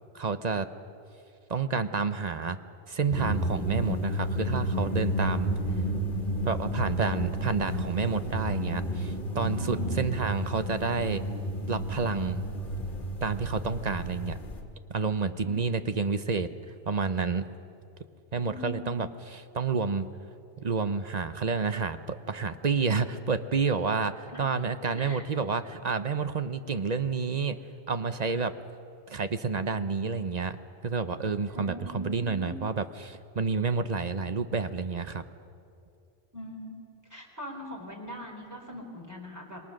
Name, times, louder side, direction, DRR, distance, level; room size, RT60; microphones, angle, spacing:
voice 1, 0.1-0.7 1.5-2.6 2.9-5.5 6.4-11.2 11.7-12.4 13.2-14.4 14.9-16.5 16.9-17.5 18.3-20.1 20.6-27.6 27.9-28.6 29.1-30.6 30.8-35.2, right 4 dB, 45° right, 11 dB, 0.8 m, -29 dB
sound 1, 3.1-14.6, equal, 55° left, 1.8 m, -31 dB
voice 2, 9.6-10.1 15.4-15.9 18.4-19.0 24.3-24.4 24.9-25.2 31.5-32.7 36.3-39.6, equal, 15° right, 0 dB, 3.9 m, -41 dB
26.5 x 21.5 x 6.5 m, 2.5 s
omnidirectional pair, 1.1 m